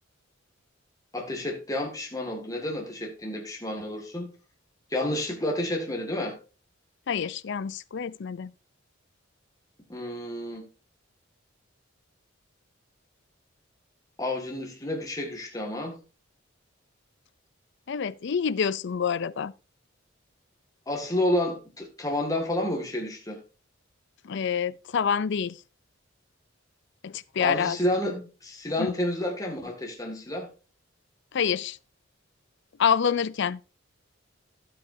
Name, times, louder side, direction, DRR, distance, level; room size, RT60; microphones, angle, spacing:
voice 1, 1.1-4.3 4.9-6.4 9.9-10.6 14.2-16.0 20.9-23.4 27.4-30.5, left 1 dB, 20° left, 2.0 m, -30 dB
voice 2, 7.1-8.5 17.9-19.5 24.2-25.6 27.0-27.8 28.8-28.9 31.3-31.8 32.8-33.6, left 7 dB, 60° left, 0.5 m, -27 dB
12.5 x 8.5 x 2.7 m
head